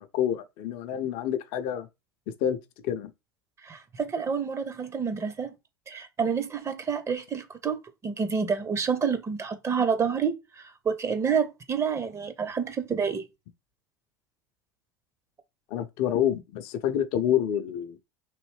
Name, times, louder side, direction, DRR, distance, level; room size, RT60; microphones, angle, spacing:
voice 1, 0.0-1.9 2.3-2.6 2.8-3.1 15.7-18.0, left 10 dB, 55° left, 0.5 m, -28 dB
voice 2, 3.6-5.5 5.9-13.2, right 6 dB, 25° right, 0.6 m, -28 dB
3.1 x 2.6 x 3.2 m
hypercardioid pair, 80°, 11 cm